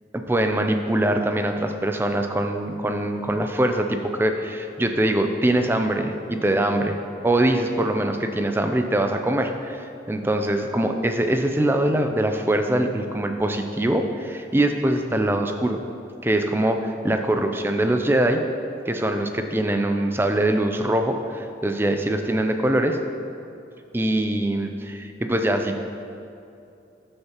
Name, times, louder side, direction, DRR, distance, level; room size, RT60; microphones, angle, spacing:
voice 1, 0.1-7.0 7.2-15.8 16.2-18.4 18.9-23.0 23.9-25.9, right 1 dB, 10° right, 5 dB, 0.4 m, -23 dB
12.5 x 6.6 x 3.0 m, 2.6 s
head